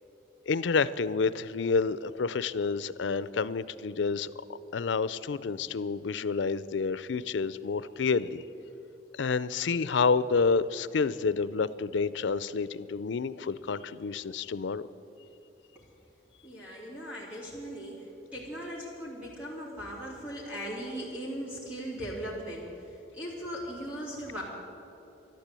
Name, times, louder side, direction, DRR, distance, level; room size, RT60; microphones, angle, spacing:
voice 1, 0.5-4.3 4.7-8.4 9.1-14.8, left 4 dB, 80° left, 17 dB, 0.5 m, -29 dB
voice 2, 16.4-18.1 18.3-24.4, equal, 5° right, -7 dB, 2.8 m, -38 dB
12.0 x 12.0 x 8.3 m, 3.0 s
head